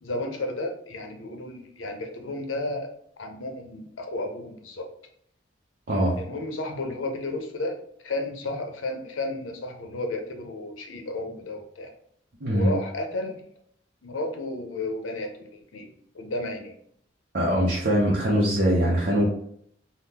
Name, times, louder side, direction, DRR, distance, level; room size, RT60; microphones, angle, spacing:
voice 1, 0.0-2.9 3.2-4.9 6.2-7.7 8.0-11.9 12.5-13.4 14.0-16.7, left 2 dB, 85° left, 4 dB, 0.6 m, -33 dB
voice 2, 5.9-6.2 12.4-12.7 17.3-19.3, equal, 50° right, -4 dB, 0.5 m, -22 dB
3.5 x 2.0 x 2.8 m, 0.67 s
head